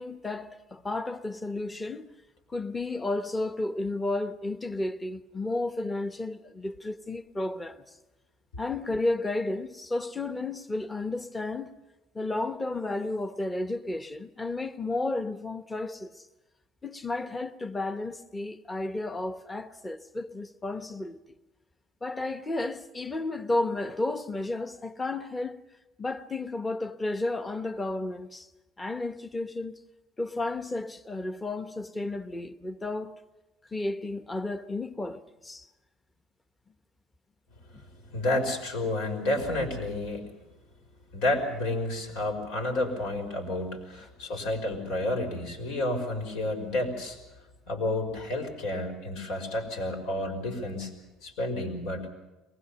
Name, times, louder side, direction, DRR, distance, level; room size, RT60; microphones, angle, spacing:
voice 1, 0.0-2.1 2.5-7.8 8.6-11.7 12.1-16.2 16.8-21.2 22.0-25.6 26.0-28.5 28.8-29.8 30.2-33.1 33.7-35.7 37.7-37.8, left 2 dB, 15° left, 1.0 m, -32 dB
voice 2, 38.1-40.3 41.1-47.2 47.7-50.9 51.2-52.1, left 1 dB, 80° left, 5.4 m, -30 dB
23.0 x 20.5 x 7.0 m
cardioid pair, 140°, 0 cm